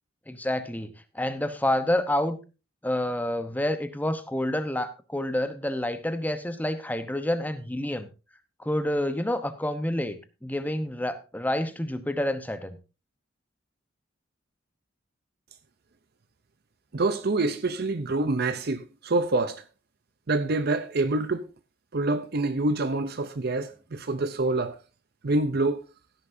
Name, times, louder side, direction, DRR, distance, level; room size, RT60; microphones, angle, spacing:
voice 1, 0.3-2.4 2.8-8.1 8.6-12.8, left 1 dB, 10° left, 0.9 m, -28 dB
voice 2, 16.9-19.6 20.3-21.4 21.9-24.8 25.2-25.8, right 2 dB, 50° right, 0.6 m, -26 dB
15.5 x 10.0 x 2.7 m
head